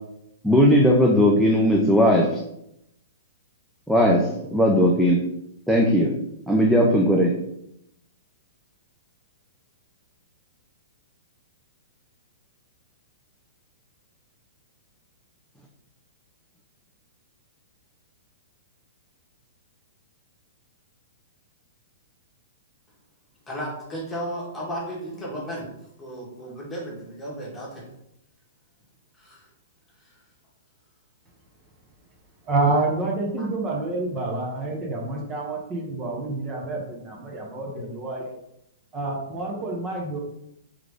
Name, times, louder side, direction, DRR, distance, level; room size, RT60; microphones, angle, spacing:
voice 1, 0.4-2.3 3.9-5.2 5.7-6.1 6.5-7.3, equal, ahead, 0.5 m, -18 dB
voice 2, 23.5-25.7 26.0-27.8 29.2-29.5 33.4-33.5, equal, 15° left, 1.4 m, -34 dB
voice 3, 32.4-38.2 38.9-40.2, right 2 dB, 25° right, 1.0 m, -28 dB
3.7 x 3.2 x 3.5 m
hypercardioid pair, 135°, 0 cm